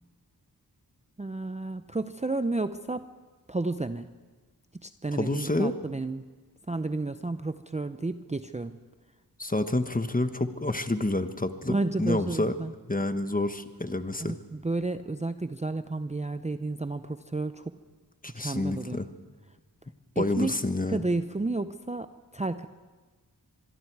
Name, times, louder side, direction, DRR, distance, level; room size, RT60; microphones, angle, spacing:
voice 1, 1.2-3.0 3.5-4.1 4.7-6.2 6.7-8.8 11.7-12.7 14.2-17.7 18.3-19.0 20.2-20.5 20.9-22.7, right 2 dB, 20° right, 10 dB, 0.6 m, -31 dB
voice 2, 5.1-5.7 9.4-12.5 12.9-14.3 18.2-19.1 20.2-21.0, left 2 dB, 20° left, 9 dB, 1.2 m, -28 dB
25.5 x 22.5 x 4.7 m, 1.3 s
wide cardioid pair, 60°, 39 cm